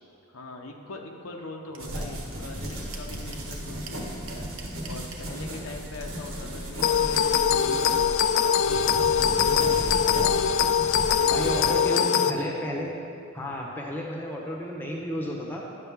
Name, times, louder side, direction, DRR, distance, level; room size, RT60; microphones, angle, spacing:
voice 1, 0.3-4.5 4.9-10.5 11.0-12.6, left 2 dB, 80° left, 1 dB, 0.8 m, -42 dB
sound 1, 1.7-1.8 2.2-2.3 2.4-3.5 3.9-5.2, right 6 dB, 65° right, 0.8 m, -43 dB
sound 2, 1.8-11.7, equal, 85° right, 1.4 m, -35 dB
sound 3, 6.8-12.3, left 8 dB, 60° left, 0.3 m, -22 dB
voice 2, 11.3-13.0 13.3-15.6, equal, 10° left, -2 dB, 0.9 m, -32 dB
10.0 x 6.6 x 3.6 m, 2.4 s
head